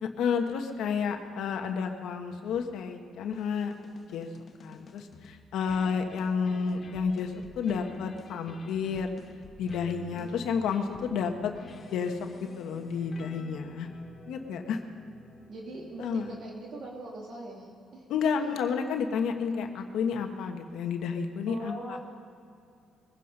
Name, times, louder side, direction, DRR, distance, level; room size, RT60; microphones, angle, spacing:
voice 1, 0.0-3.7 4.1-4.3 4.6-9.1 9.6-11.5 11.9-13.9 14.3-14.8 16.0-16.4 18.1-22.0, left 6 dB, 80° left, 5 dB, 1.3 m, -31 dB
sound 1, 3.3-16.8, left 5 dB, 45° left, 0.9 m, -50 dB
voice 2, 10.1-10.5 15.5-18.0 18.3-18.6 21.5-22.0, right 2 dB, 70° right, -2 dB, 2.5 m, -42 dB
21.5 x 9.7 x 5.5 m, 2.4 s
cardioid pair, 90°, 0 cm